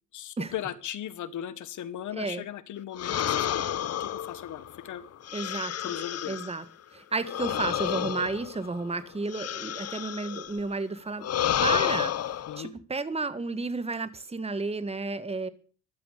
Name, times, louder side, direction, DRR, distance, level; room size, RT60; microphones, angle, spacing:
voice 1, 0.1-3.6 4.0-5.0 5.8-6.4 12.5-12.7, left 11 dB, 75° left, 1.7 m, -37 dB
sound 1, 3.0-6.6 7.2-10.6 11.2-12.6, left 10 dB, 55° left, 0.9 m, -30 dB
voice 2, 5.3-5.9 6.3-6.6 6.9-11.3 11.6-15.5, right 3 dB, 20° right, 1.8 m, -32 dB
14.5 x 12.5 x 6.7 m
cardioid pair, 90°, 30 cm